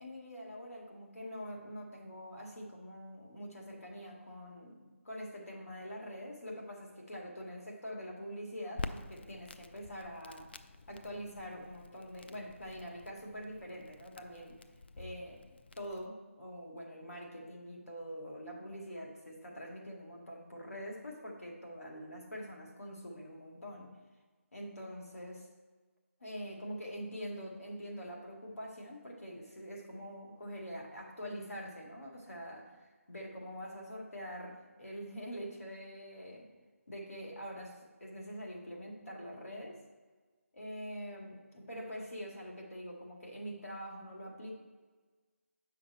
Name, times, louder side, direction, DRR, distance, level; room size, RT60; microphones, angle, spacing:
voice 1, 0.0-10.5 10.9-14.6 15.0-15.4 15.8-23.9 24.5-25.5 26.2-36.5 36.9-39.8 40.5-44.6, equal, 85° left, -1 dB, 2.0 m, -45 dB
Crackle, 8.8-16.1, left 3 dB, 45° left, 0.4 m, -48 dB
7.5 x 5.8 x 4.1 m, 1.4 s
figure-of-eight pair, 160°, 8 cm